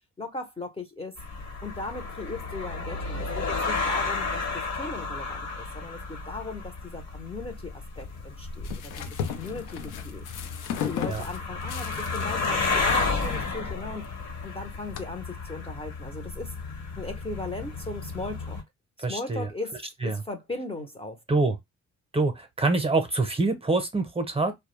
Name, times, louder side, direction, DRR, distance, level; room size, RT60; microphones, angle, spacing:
voice 1, 0.2-1.2 1.6-10.2 10.7-14.1 14.4-16.5 17.0-18.6 19.1-21.5, left 2 dB, 20° left, 0.6 m, -38 dB
sound 1, 1.2-18.6, left 3 dB, 65° left, 1.2 m, -32 dB
sound 2, 8.0-15.0, left 8 dB, 85° left, 0.6 m, -37 dB
voice 2, 19.0-19.5 20.0-20.2 21.3-21.6 22.1-24.6, right 3 dB, 20° right, 0.7 m, -25 dB
2.3 x 2.1 x 3.0 m
cardioid pair, 90°, 30 cm